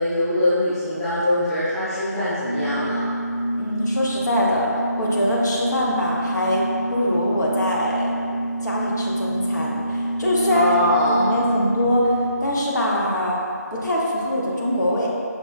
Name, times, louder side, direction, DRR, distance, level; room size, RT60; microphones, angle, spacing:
voice 1, 0.0-3.1 10.5-11.3, left 1 dB, ahead, -19 dB, 0.5 m, -23 dB
Organ, 2.4-12.7, right 1 dB, 75° right, 0.3 m, -27 dB
voice 2, 3.6-6.6 6.9-8.1 8.6-13.4 13.7-15.1, left 1 dB, 75° left, -4 dB, 0.8 m, -23 dB
5.7 x 2.0 x 2.4 m, 2.4 s
figure-of-eight pair, 165°, 10 cm